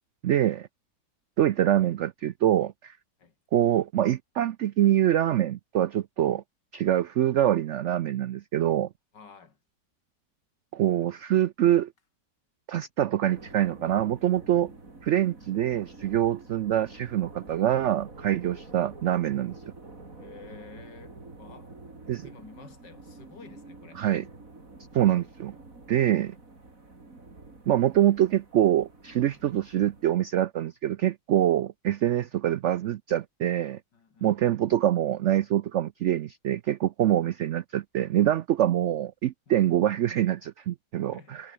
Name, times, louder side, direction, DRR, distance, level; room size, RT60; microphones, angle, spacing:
voice 1, 0.2-0.7 1.4-2.9 3.5-6.4 6.7-8.9 10.7-11.9 12.7-14.7 15.0-19.6 22.1-22.3 24.0-24.2 24.9-25.6 25.9-26.4 27.7-33.8 34.2-41.5, right 12 dB, 90° right, 0.6 m, -25 dB
voice 2, 9.1-9.6 18.4-18.5 20.1-21.7 22.0-24.0 32.1-32.3 33.9-34.5 39.5-39.6 41.0-41.5, left 5 dB, 85° left, 3.3 m, -51 dB
sound 1, 13.3-30.1, right 3 dB, 50° right, 4.6 m, -48 dB
omnidirectional pair, 1.8 m